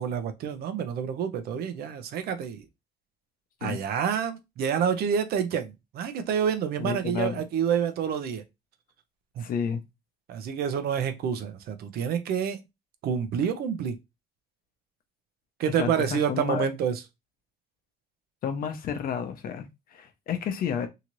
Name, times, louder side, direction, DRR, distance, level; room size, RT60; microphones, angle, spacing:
voice 1, 0.0-2.7 3.6-8.4 9.4-9.5 10.3-12.6 13.0-14.0 15.6-17.0, right 7 dB, 65° right, 0.6 m, -28 dB
voice 2, 6.8-7.4 9.4-9.8 15.8-16.7 18.4-20.9, left 7 dB, 60° left, 0.7 m, -31 dB
2.8 x 2.5 x 3.0 m
cardioid pair, 110°, 17 cm